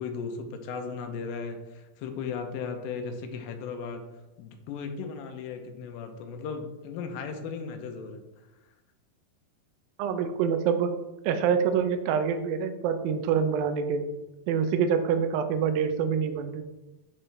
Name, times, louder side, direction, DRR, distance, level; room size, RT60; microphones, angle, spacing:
voice 1, 0.0-4.1 4.4-8.3, left 5 dB, 80° left, 5 dB, 2.3 m, -36 dB
voice 2, 10.0-10.9 11.3-14.0 14.5-16.6, right 7 dB, 80° right, 8 dB, 2.2 m, -26 dB
9.4 x 3.6 x 3.3 m, 1.0 s
omnidirectional pair, 4.4 m